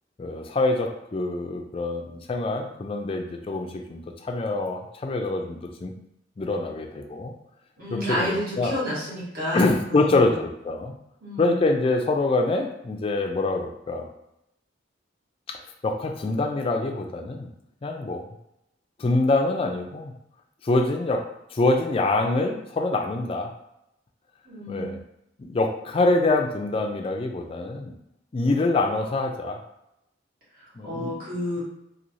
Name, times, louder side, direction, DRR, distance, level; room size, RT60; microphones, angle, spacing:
voice 1, 0.2-5.9 6.4-7.3 7.9-8.7 9.5-11.0 11.4-14.1 15.5-17.5 17.8-18.3 19.0-20.1 20.6-23.5 24.7-25.0 25.4-27.9 28.3-29.6 30.8-31.4, left 2 dB, 30° left, 3 dB, 0.3 m, -25 dB
voice 2, 7.8-10.4 11.2-11.6 24.4-24.9 30.6-31.6, equal, 50° right, -8 dB, 1.4 m, -30 dB
3.1 x 2.7 x 2.6 m, 0.83 s
head